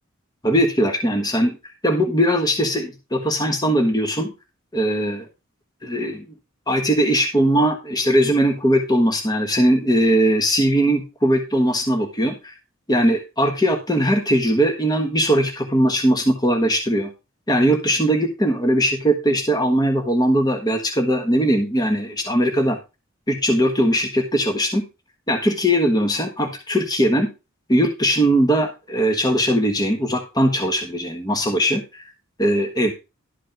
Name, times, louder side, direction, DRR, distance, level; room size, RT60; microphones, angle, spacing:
voice 1, 0.4-1.6 1.8-4.3 4.7-5.3 5.8-6.2 6.7-12.5 12.9-17.1 17.5-22.8 23.3-24.8 25.3-27.3 27.7-32.0 32.4-32.9, equal, 20° left, 4 dB, 1.5 m, -20 dB
12.0 x 5.3 x 5.1 m, 0.27 s
head